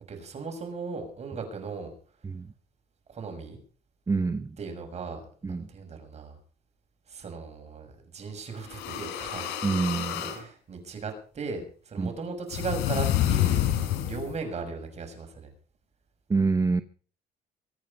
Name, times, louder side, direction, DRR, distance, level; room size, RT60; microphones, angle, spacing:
voice 1, 0.1-1.9 3.1-3.6 4.6-6.4 7.1-9.5 10.3-13.7 14.0-15.5, right 4 dB, 40° right, 5 dB, 6.3 m, -37 dB
voice 2, 4.1-4.6 5.4-5.7 9.6-10.4 12.0-12.1 16.3-16.8, right 4 dB, 20° right, 12 dB, 0.8 m, -27 dB
sound 1, 8.6-10.4 12.5-14.4, left 12 dB, 90° left, 4.3 m, -28 dB
24.0 x 9.0 x 5.4 m, 0.42 s
cardioid pair, 110°, 17 cm